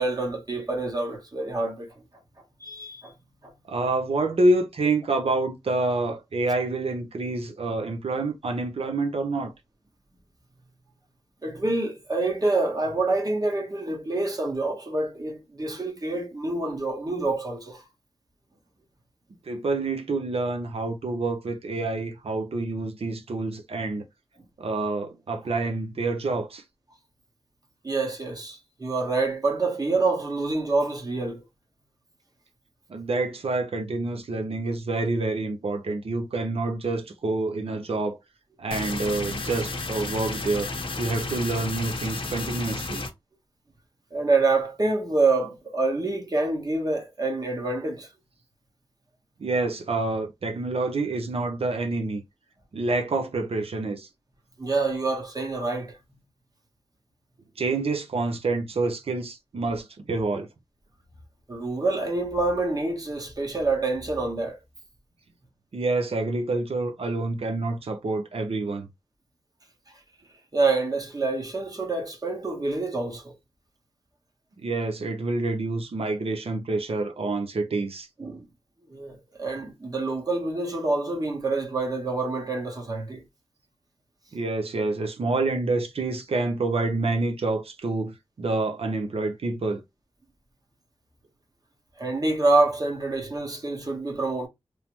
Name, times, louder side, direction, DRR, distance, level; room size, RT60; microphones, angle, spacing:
voice 1, 0.0-2.0 2.6-3.1 3.4-3.5 11.4-17.8 27.8-31.4 44.1-48.1 54.6-56.0 61.5-64.6 70.5-73.4 78.2-78.5 78.9-83.2 92.0-94.5, right 3 dB, 40° right, 1.0 m, -27 dB
voice 2, 3.7-9.5 19.5-24.0 24.6-26.6 32.9-38.2 38.6-40.7 41.0-43.0 49.4-52.2 52.7-54.1 57.6-60.5 65.7-68.9 74.6-78.1 84.3-89.8, right 2 dB, 70° right, 0.6 m, -27 dB
sound 1, 38.7-43.1, left 3 dB, 55° left, 0.7 m, -32 dB
3.1 x 2.0 x 2.9 m
wide cardioid pair, 65°, 10 cm